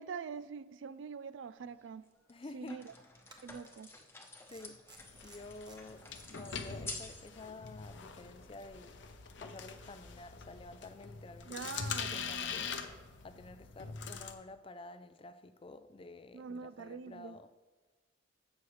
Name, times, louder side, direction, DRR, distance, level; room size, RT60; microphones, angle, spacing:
voice 1, 0.0-2.0 2.5-2.9 3.4-3.9 11.5-12.7 16.3-17.4, right 5 dB, 70° right, 0.4 m, -44 dB
sound 1, 1.6-1.7 2.3-7.3 7.6-7.7, left 3 dB, 10° left, 0.9 m, -49 dB
voice 2, 2.3-2.9 4.5-4.8 5.2-9.0 9.4-12.8 13.2-17.5, left 2 dB, 30° left, 0.4 m, -50 dB
sound 2, 3.2-3.8 4.5-6.2, right 3 dB, 20° right, 1.0 m, -58 dB
sound 3, 5.0-14.3, left 6 dB, 65° left, 0.8 m, -43 dB
15.5 x 6.3 x 3.2 m
head